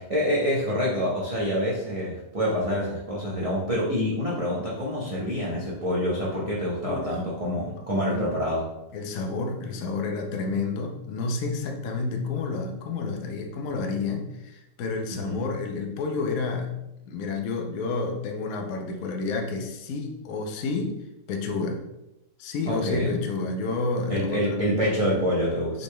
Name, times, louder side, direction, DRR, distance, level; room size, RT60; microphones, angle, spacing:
voice 1, 0.0-8.7 15.1-15.5 22.7-23.2 24.1-25.8, equal, 35° right, -6 dB, 0.5 m, -26 dB
voice 2, 6.8-7.2 7.8-8.3 8.9-21.0 21.3-21.8 22.4-24.6 25.7-25.8, left 3 dB, 65° left, 3 dB, 1.0 m, -30 dB
6.2 x 3.4 x 2.2 m, 0.90 s
omnidirectional pair, 1.8 m